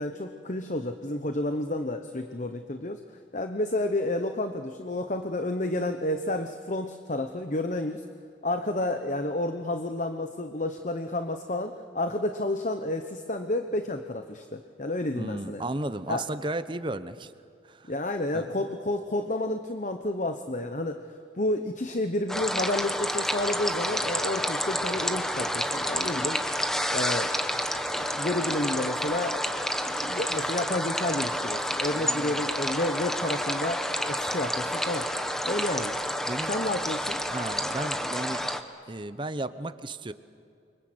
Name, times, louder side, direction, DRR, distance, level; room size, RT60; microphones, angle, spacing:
voice 1, 0.0-3.0 3.3-8.0 8.4-15.6 16.1-16.2 17.9-21.0 21.3-26.4 26.9-27.3 27.9-29.5 29.8-35.1 35.4-36.0 36.5-37.2, left 1 dB, 40° left, 7 dB, 1.0 m, -30 dB
voice 2, 15.1-17.3 17.6-17.9 18.3-18.7 32.0-32.5 36.3-36.6 37.3-38.4 38.9-40.1, right 2 dB, 25° right, 12 dB, 0.9 m, -34 dB
sound 1, 22.3-38.6, equal, ahead, 1.1 m, -29 dB
29.0 x 24.5 x 7.9 m, 2.4 s
head